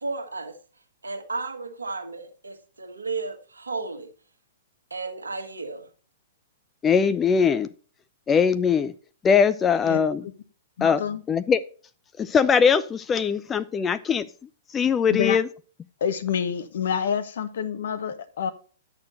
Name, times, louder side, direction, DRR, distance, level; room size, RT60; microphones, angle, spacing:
voice 1, 0.0-0.6 1.0-4.1 4.9-5.9, right 3 dB, 75° right, 1.4 m, -33 dB
voice 2, 6.8-7.7 8.3-8.9 9.2-10.2 10.8-11.0 11.3-11.6 12.2-14.3 14.7-15.5, left 6 dB, 15° left, 0.4 m, -21 dB
voice 3, 10.8-11.2 15.1-15.4 16.0-18.5, left 8 dB, 55° left, 1.1 m, -27 dB
10.5 x 6.7 x 4.0 m
figure-of-eight pair, 110°, 0 cm